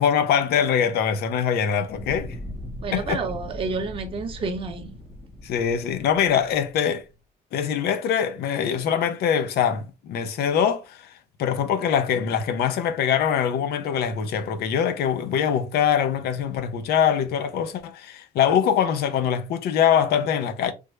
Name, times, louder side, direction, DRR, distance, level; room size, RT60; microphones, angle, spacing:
voice 1, 0.0-2.4 2.9-3.2 5.4-7.0 7.5-11.1 11.4-20.7, left 8 dB, 70° left, 0.6 m, -23 dB
Fire, 1.8-7.0, left 1 dB, 30° left, 1.1 m, -39 dB
voice 2, 2.8-5.0, right 4 dB, 30° right, 0.7 m, -29 dB
3.4 x 2.0 x 3.2 m
cardioid pair, 110°, 17 cm